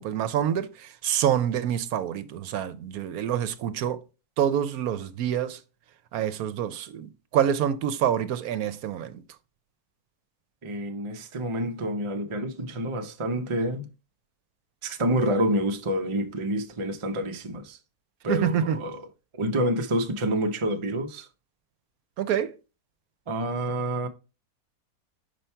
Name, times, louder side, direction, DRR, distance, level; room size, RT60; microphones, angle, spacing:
voice 1, 0.0-4.0 4.4-5.6 6.1-9.2 18.3-18.8 22.2-22.5, right 9 dB, 70° right, 1.0 m, -26 dB
voice 2, 10.6-13.9 14.8-17.8 18.2-19.1 19.3-21.3 23.3-24.1, right 1 dB, 45° right, 0.4 m, -28 dB
5.6 x 5.1 x 4.4 m
omnidirectional pair, 1.7 m